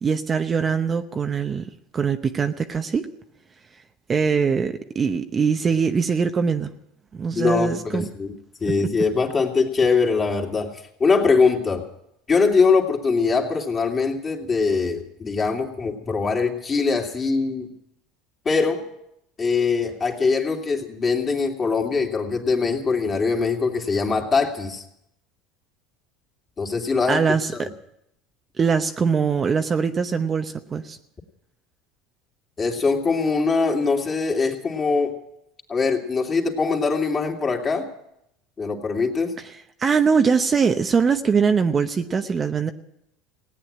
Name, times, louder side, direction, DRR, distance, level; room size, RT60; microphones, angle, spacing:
voice 1, 0.0-3.0 4.1-6.7 7.1-8.1 27.1-27.7 28.6-31.0 39.4-42.7, right 5 dB, 30° right, 7 dB, 0.8 m, -22 dB
voice 2, 7.4-8.3 8.6-11.8 12.3-17.7 18.4-18.8 19.4-24.8 26.6-27.2 27.5-27.7 32.6-35.1 35.7-37.9 38.6-39.3, left 4 dB, 30° left, 2 dB, 2.9 m, -22 dB
17.0 x 9.3 x 8.8 m, 0.79 s
supercardioid pair, 100°, 0 cm